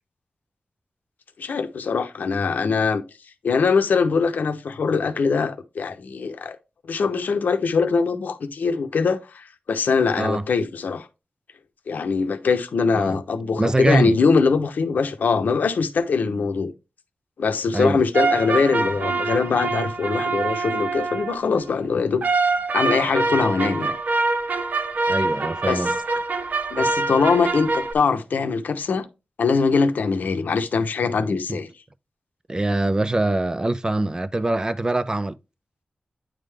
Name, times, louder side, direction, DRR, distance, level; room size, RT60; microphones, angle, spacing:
voice 1, 1.4-3.0 3.4-6.6 6.9-11.1 11.9-16.7 17.4-22.2 22.7-23.9 25.7-25.8 26.7-29.0 29.4-31.7, left 5 dB, 85° left, 0.8 m, -22 dB
voice 2, 13.6-14.2 17.7-18.0 25.1-25.9 31.5-31.6 32.5-35.4, right 2 dB, 25° right, 0.5 m, -23 dB
sound 1, 18.1-21.5 22.2-27.9, right 3 dB, 70° right, 0.6 m, -24 dB
9.0 x 3.7 x 3.3 m
cardioid pair, 60°, 3 cm